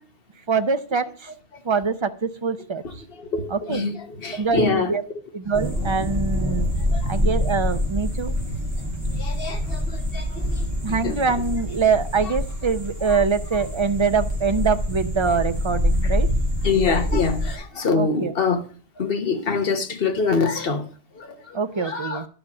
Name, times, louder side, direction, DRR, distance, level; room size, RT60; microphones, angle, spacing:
voice 1, 0.5-1.3 1.6-2.8 3.5-3.8 4.3-5.0 5.3-6.7 7.1-8.3 10.8-16.3 18.0-18.3 21.5-22.2, right 5 dB, 35° right, 0.5 m, -24 dB
voice 2, 3.1-4.9 6.9-7.1 9.1-11.2 13.0-13.2 16.0-16.1 16.6-18.6 19.0-22.3, left 4 dB, 55° left, 1.3 m, -25 dB
sound 1, 5.5-17.6, left 1 dB, 15° right, 2.6 m, -26 dB
11.0 x 5.1 x 7.1 m
omnidirectional pair, 1.2 m